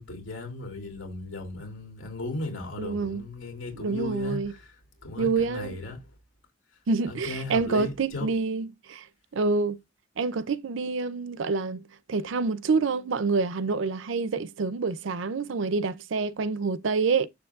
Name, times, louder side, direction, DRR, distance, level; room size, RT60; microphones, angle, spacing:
voice 1, 0.0-4.8 5.0-6.1 7.1-8.3, left 2 dB, 90° left, 2.9 m, -36 dB
voice 2, 2.8-3.2 3.8-4.5 5.2-5.7 6.9-9.1 9.3-9.8 10.2-17.3, right 4 dB, 80° right, 0.5 m, -27 dB
7.0 x 6.9 x 2.4 m
head